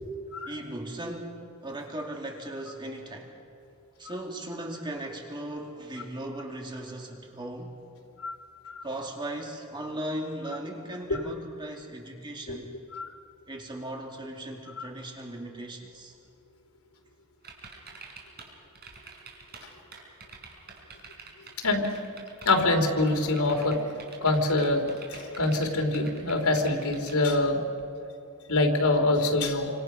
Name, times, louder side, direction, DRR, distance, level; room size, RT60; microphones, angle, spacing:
voice 1, 0.5-3.3 4.0-7.8 8.8-12.7 13.5-16.2, right 1 dB, 20° right, 1 dB, 2.4 m, -37 dB
sound 1, 17.4-18.5 18.7-19.6 19.9-22.7 23.0-27.2, right 5 dB, 45° right, 4.7 m, -46 dB
voice 2, 22.4-23.8 24.2-24.8 25.1-27.6 28.5-29.7, left 2 dB, 85° left, 3 dB, 3.2 m, -25 dB
28.0 x 26.0 x 5.7 m, 2.5 s
head